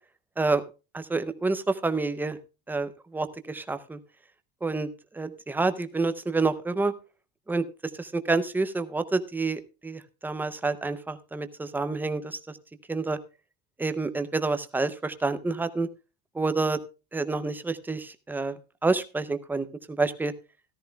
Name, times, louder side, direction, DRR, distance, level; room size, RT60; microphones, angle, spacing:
voice 1, 0.9-2.4 2.7-4.0 4.6-4.9 5.1-6.9 7.5-7.6 8.0-12.4 12.9-13.2 13.8-15.9 16.4-16.8 17.1-18.6 18.8-19.7 20.0-20.3, right 3 dB, 5° right, 11 dB, 0.5 m, -28 dB
14.0 x 13.0 x 2.2 m, 0.31 s
cardioid pair, 155°, 41 cm